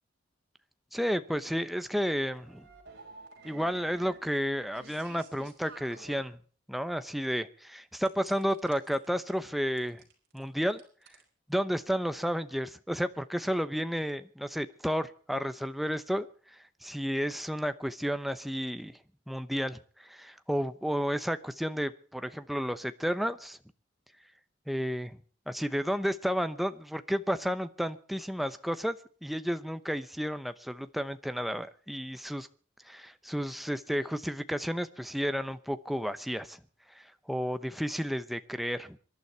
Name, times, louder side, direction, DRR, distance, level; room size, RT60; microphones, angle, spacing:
voice 1, 0.9-2.7 3.4-6.4 6.7-10.0 10.3-10.8 11.5-19.0 19.3-23.6 24.7-25.2 25.5-29.0 29.2-32.5 32.8-36.6 36.9-39.0, equal, ahead, 11 dB, 0.8 m, -32 dB
sound 1, 2.0-6.2 8.0-9.3 9.8-11.2, right 3 dB, 55° right, 5.2 m, -52 dB
26.5 x 11.5 x 4.5 m, 0.43 s
head